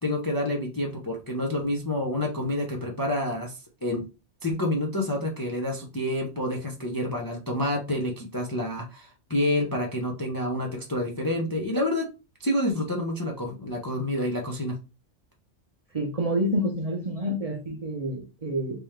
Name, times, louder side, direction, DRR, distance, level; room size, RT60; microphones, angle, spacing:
voice 1, 0.0-4.0 4.4-12.1 12.4-14.8, left 1 dB, 25° left, 0 dB, 0.5 m, -28 dB
voice 2, 15.9-18.8, equal, 35° right, 0 dB, 0.7 m, -28 dB
3.6 x 2.9 x 3.3 m, 0.30 s
omnidirectional pair, 1.2 m